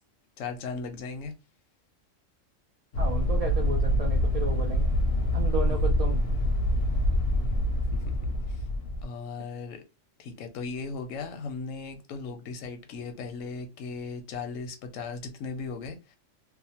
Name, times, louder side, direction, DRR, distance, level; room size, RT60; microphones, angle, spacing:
voice 1, 0.4-1.3 5.7-5.9 7.9-8.2 8.5-8.6 9.0-9.8 10.2-16.2, left 4 dB, 85° left, 1.0 m, -37 dB
sound 1, 2.9-9.0, left 1 dB, 65° left, 0.7 m, -25 dB
voice 2, 3.0-4.9 5.3-6.2, right 2 dB, 80° right, 0.3 m, -33 dB
2.6 x 2.1 x 2.8 m
omnidirectional pair, 1.3 m